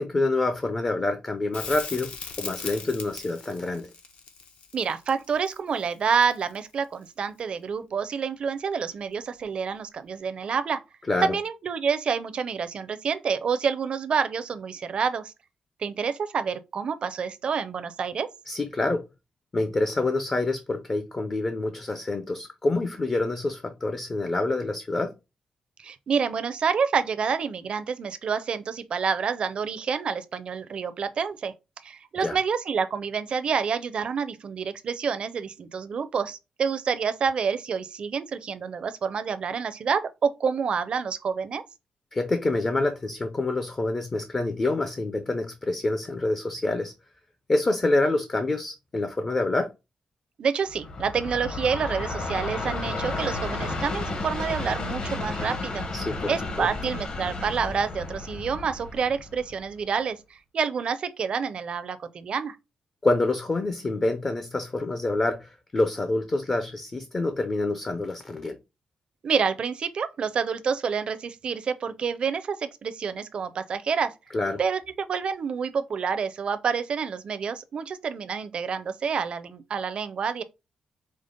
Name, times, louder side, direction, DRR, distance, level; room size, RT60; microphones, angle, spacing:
voice 1, 0.0-2.1 2.4-3.9 11.1-11.4 18.5-19.0 19.5-25.1 32.2-32.4 42.1-46.9 47.5-49.7 55.9-56.2 56.6-56.7 63.0-68.6 74.3-74.6, left 2 dB, 25° left, 0.5 m, -27 dB
Crackle, 1.5-6.7 9.4-9.5, left 5 dB, 75° left, 0.8 m, -39 dB
voice 2, 4.7-10.8 11.2-15.3 15.8-18.3 25.8-31.5 31.8-41.6 50.4-55.9 56.3-60.2 60.5-62.6 69.2-74.1 74.6-80.4, right 6 dB, 50° right, 0.5 m, -28 dB
Train, 50.7-59.9, left 3 dB, 45° left, 0.9 m, -32 dB
5.1 x 2.0 x 3.6 m
wide cardioid pair, 150°, 2 cm